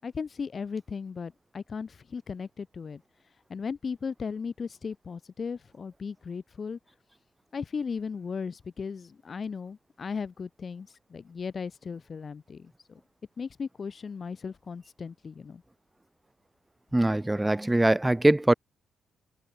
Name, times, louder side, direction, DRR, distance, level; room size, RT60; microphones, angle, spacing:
voice 1, 0.0-3.0 3.5-6.8 7.5-13.0 13.4-15.6, left 5 dB, 40° left, 7.8 m, -36 dB
voice 2, 16.9-18.5, right 1 dB, 10° right, 2.9 m, -22 dB
cardioid pair, 90°, 0 cm